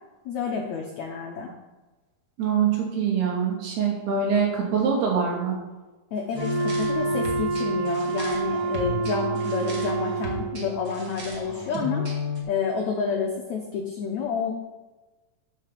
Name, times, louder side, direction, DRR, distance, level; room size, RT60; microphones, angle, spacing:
voice 1, 0.2-1.5 6.1-12.1 12.5-14.5, left 5 dB, 80° left, 1 dB, 1.6 m, -29 dB
voice 2, 2.4-5.6, right 6 dB, 75° right, -2 dB, 4.1 m, -24 dB
Wind instrument woodwind instrument, 6.3-10.6, right 4 dB, 55° left, 0.4 m, -28 dB
sound 1, 6.3-12.4, left 2 dB, 40° right, 1.6 m, -34 dB
8.2 x 6.7 x 6.7 m, 1.2 s
omnidirectional pair, 4.6 m